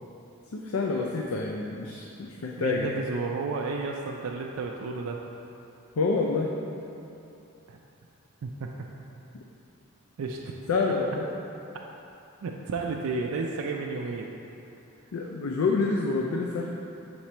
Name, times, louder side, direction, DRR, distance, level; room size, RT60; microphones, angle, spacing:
voice 1, 0.5-2.9 6.0-6.5 10.7-11.3 15.1-16.7, left 4 dB, 75° left, 0 dB, 0.4 m, -27 dB
voice 2, 2.6-5.2 7.7-7.8 8.4-8.7 10.2-10.4 12.4-14.3, right 4 dB, 80° right, 0 dB, 0.4 m, -32 dB
6.1 x 4.0 x 4.3 m, 2.8 s
head